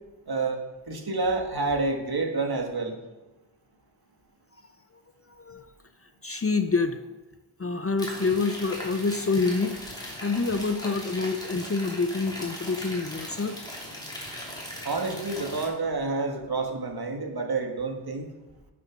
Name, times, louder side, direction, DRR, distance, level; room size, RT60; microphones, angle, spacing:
voice 1, 0.3-2.9 14.8-18.3, right 3 dB, 50° right, 3 dB, 1.8 m, -29 dB
voice 2, 5.3-5.6 6.2-7.0 7.6-13.6, left 4 dB, 30° left, 9 dB, 0.6 m, -27 dB
sound 1, 8.0-15.7, equal, 10° left, 3.1 m, -39 dB
12.0 x 7.0 x 6.0 m, 1.1 s
wide cardioid pair, 110°, 46 cm